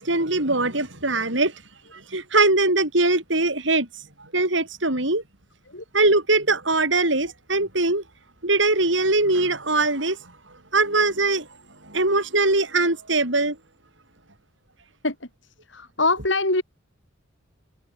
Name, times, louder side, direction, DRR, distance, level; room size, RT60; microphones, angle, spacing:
voice 1, 0.0-1.6 1.9-3.9 4.2-5.2 5.9-8.0 8.4-10.2 10.7-11.5 11.8-13.6, right 2 dB, 65° right, 7.7 m, -21 dB
voice 2, 15.7-16.6, left 2 dB, 65° left, 7.6 m, -23 dB
head